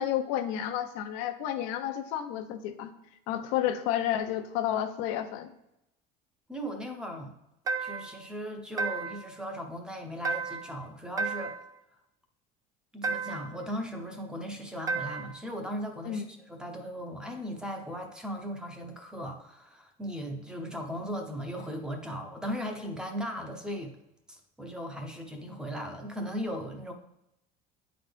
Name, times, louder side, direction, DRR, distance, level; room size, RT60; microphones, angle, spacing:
voice 1, 0.0-2.9 3.3-5.5 16.0-16.3, left 11 dB, 80° left, 8 dB, 0.7 m, -31 dB
voice 2, 6.5-7.3 7.8-11.6 12.9-23.9 24.3-26.9, equal, 5° right, 3 dB, 0.8 m, -37 dB
sound 1, 7.7-8.2 8.8-9.3 10.2-10.8 11.2-11.7 13.0-13.6 14.9-15.4, right 4 dB, 20° right, 0.4 m, -33 dB
9.3 x 3.9 x 3.4 m, 0.84 s
cardioid pair, 150°, 17 cm